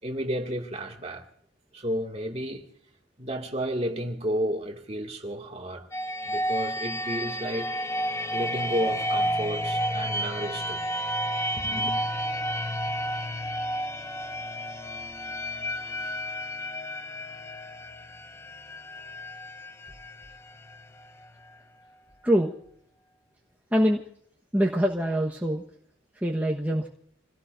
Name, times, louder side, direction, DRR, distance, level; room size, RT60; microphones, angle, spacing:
voice 1, 0.0-1.2 1.7-2.7 3.2-5.9 6.2-7.7 8.3-10.8 11.6-12.0, equal, 30° right, 2.3 m, -32 dB
sound 1, 5.9-21.5, equal, 15° left, 0.7 m, -31 dB
voice 2, 22.2-22.5 23.7-24.0 24.5-25.6 26.1-26.9, equal, 10° right, 1.3 m, -24 dB
28.0 x 17.5 x 2.6 m
head